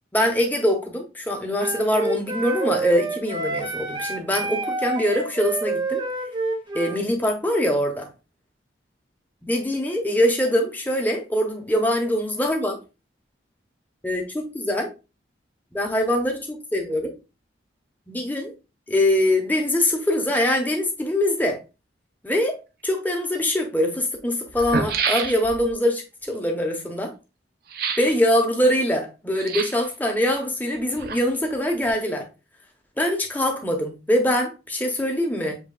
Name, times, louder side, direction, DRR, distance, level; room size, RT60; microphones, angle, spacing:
voice 1, 0.1-6.0 6.7-8.1 9.4-12.8 14.0-14.9 15.7-17.1 18.1-18.5 18.9-21.6 22.2-22.6 22.8-27.1 28.0-32.3 33.0-35.6, left 1 dB, 10° left, 0.9 m, -23 dB
Wind instrument woodwind instrument, 1.5-7.0, right 3 dB, 25° right, 0.8 m, -28 dB
sound 1, 23.2-23.3 24.2-24.3 24.5-25.7 27.7-28.2 29.3-29.9 30.7-31.5 31.8-31.9, right 5 dB, 55° right, 0.6 m, -28 dB
7.2 x 3.0 x 2.4 m
head